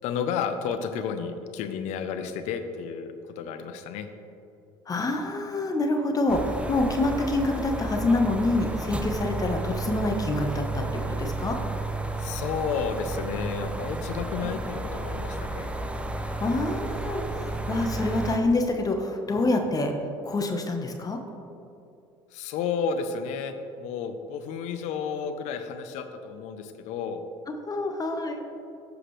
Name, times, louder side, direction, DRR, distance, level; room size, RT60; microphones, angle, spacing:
voice 1, 0.0-4.1 12.2-15.7 22.3-27.2, left 6 dB, 70° left, 8 dB, 0.7 m, -32 dB
voice 2, 4.9-11.6 16.4-19.9 20.2-21.2 27.7-28.4, left 2 dB, 30° left, 4 dB, 1.1 m, -26 dB
sound 1, 6.3-18.4, right 2 dB, 10° right, 0.6 m, -32 dB
14.5 x 5.0 x 3.2 m, 2.7 s
supercardioid pair, 80°, 12 cm